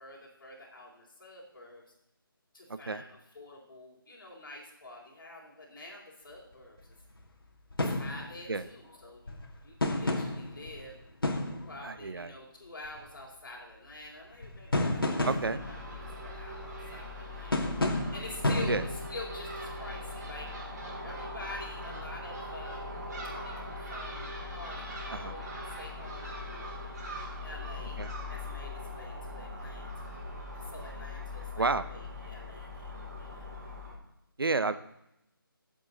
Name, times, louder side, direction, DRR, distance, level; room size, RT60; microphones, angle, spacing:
voice 1, 0.0-1.8 2.5-6.8 7.9-11.0 11.7-20.7 21.0-23.0 23.4-26.9 27.4-28.0 28.3-30.2 30.5-33.5, left 2 dB, 55° left, -7 dB, 3.8 m, -47 dB
voice 2, 2.7-3.0 8.5-8.6 11.8-12.3 15.2-15.6 18.7-18.8 25.1-25.3 28.0-28.1 31.6-31.9 34.4-34.8, right 3 dB, 75° right, 13 dB, 0.9 m, -30 dB
sound 1, 6.5-6.6 6.8-6.9 7.2-7.3 7.7-8.7 9.0-12.1 12.8-13.2 13.9-14.0 14.3-16.4 17.5-20.2 20.8-20.9, left 2 dB, 70° left, 2.5 m, -32 dB
Crow / Gull seagull, 15.3-33.9, left 2 dB, 45° right, 4.4 m, -41 dB
17.0 x 7.9 x 4.1 m, 0.81 s
figure-of-eight pair, 165°, 12 cm